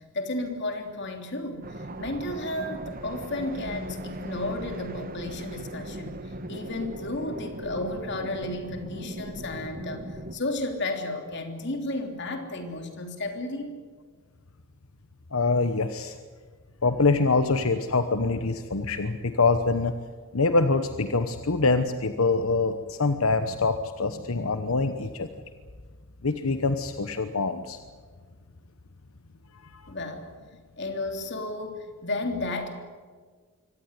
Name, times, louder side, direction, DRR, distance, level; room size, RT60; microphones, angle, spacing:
voice 1, 0.0-6.2 6.5-13.8 29.9-30.3 30.8-32.8, left 2 dB, 55° left, 5 dB, 3.2 m, -33 dB
sound 1, 1.6-10.4, right 1 dB, 45° right, 1.3 m, -38 dB
voice 2, 15.3-16.2 16.8-19.9 20.3-25.3 26.2-27.8 29.7-29.8, left 3 dB, 85° left, 9 dB, 1.1 m, -25 dB
24.0 x 18.0 x 9.7 m, 1.5 s
head